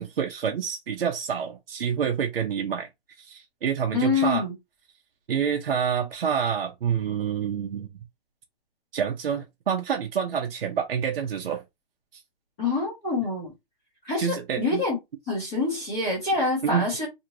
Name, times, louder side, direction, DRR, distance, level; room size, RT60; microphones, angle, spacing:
voice 1, 0.0-2.9 3.2-4.4 5.3-7.9 8.9-11.6 12.1-12.2 14.2-14.8 16.6-16.9, right 7 dB, 75° right, 0.6 m, -27 dB
voice 2, 3.9-4.5 12.6-13.5 14.0-15.0 15.3-17.1, left 3 dB, 10° left, 0.6 m, -26 dB
2.8 x 2.5 x 2.9 m
hypercardioid pair, 175°, 30 cm